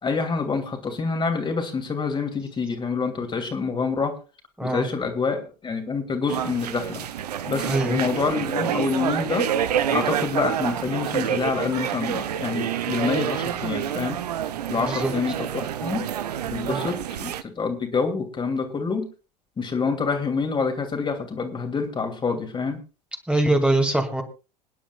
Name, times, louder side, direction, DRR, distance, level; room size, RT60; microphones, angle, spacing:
voice 1, 0.0-4.2 4.6-7.0 7.5-9.5 9.9-14.2 14.7-16.0 16.5-19.1 19.6-22.8, left 5 dB, 20° left, 3 dB, 2.6 m, -27 dB
sound 1, 6.3-17.4, right 10 dB, 70° right, 0.9 m, -28 dB
voice 2, 7.6-8.0 14.7-15.1 16.7-16.9 23.3-24.2, right 1 dB, 5° right, 2 dB, 2.3 m, -23 dB
27.0 x 10.0 x 2.3 m, 0.32 s
figure-of-eight pair, 75°, 21 cm